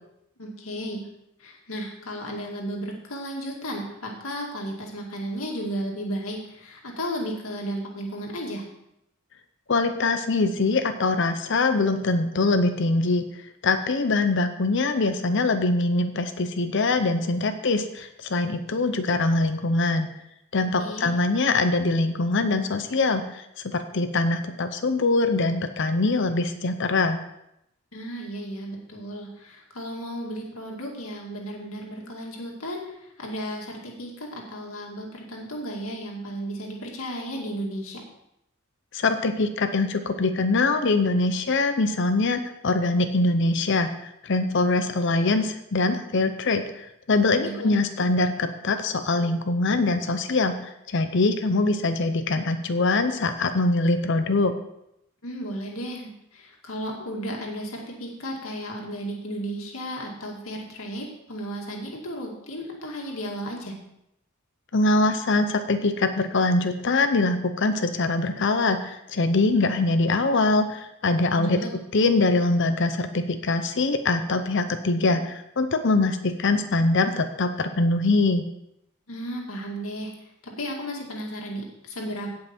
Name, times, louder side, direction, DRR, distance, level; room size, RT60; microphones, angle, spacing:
voice 1, 0.4-1.0 1.4-8.7 20.8-21.1 27.9-38.0 47.3-47.7 55.2-63.7 71.3-71.7 79.1-80.1 80.4-82.3, equal, 80° left, 0 dB, 2.2 m, -34 dB
voice 2, 9.7-13.2 13.6-20.1 20.5-27.2 38.9-43.9 44.2-54.5 64.7-71.6 71.9-78.4, left 3 dB, 60° left, 8 dB, 0.7 m, -23 dB
16.5 x 5.7 x 4.4 m, 0.80 s
head